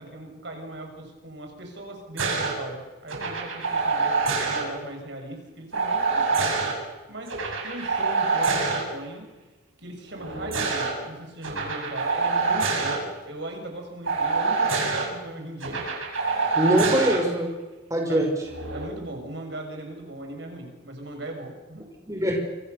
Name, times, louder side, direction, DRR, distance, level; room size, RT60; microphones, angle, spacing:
voice 1, 0.0-6.8 7.1-7.3 7.6-9.3 9.8-15.9 18.1-18.3 18.7-21.9, right 1 dB, 60° right, 4 dB, 6.3 m, -39 dB
sound 1, 2.2-2.5 3.1-4.6 5.7-6.7 7.3-8.8 10.1-10.9 11.4-13.0 14.1-15.1 15.6-17.2 18.5-18.9, right 4 dB, 85° right, 7.9 m, -25 dB
voice 2, 16.5-17.5 17.9-18.5 22.1-22.4, right 1 dB, 15° right, 1 dB, 5.5 m, -23 dB
28.0 x 27.0 x 6.7 m, 1.2 s
head